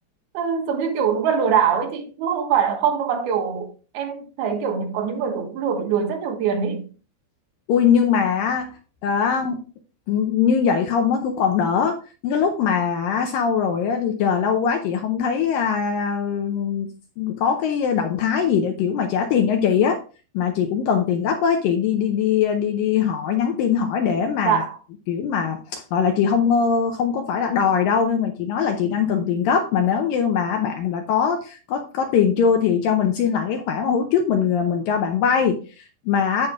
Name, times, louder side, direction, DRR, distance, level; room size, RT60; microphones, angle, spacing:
voice 1, 0.3-3.7 3.9-6.9 24.5-24.8, right 7 dB, 75° right, 3.2 m, -23 dB
voice 2, 7.7-8.7 9.0-9.6 10.1-16.9 17.2-20.0 20.3-24.6 25.1-36.5, left 7 dB, 75° left, 2.1 m, -21 dB
14.5 x 5.3 x 2.3 m
omnidirectional pair, 4.7 m